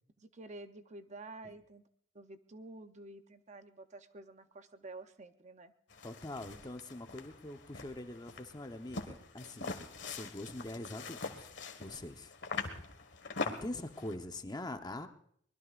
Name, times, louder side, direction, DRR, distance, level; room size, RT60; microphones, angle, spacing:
voice 1, 0.2-1.8 2.1-5.7, right 2 dB, 40° right, 9 dB, 0.7 m, -50 dB
sound 1, 5.9-14.2, left 4 dB, 70° left, 1.6 m, -43 dB
voice 2, 6.0-9.7 10.0-11.5 11.8-12.3 13.4-15.1, left 1 dB, 20° left, 6 dB, 0.9 m, -43 dB
23.5 x 20.5 x 2.5 m, 0.64 s
head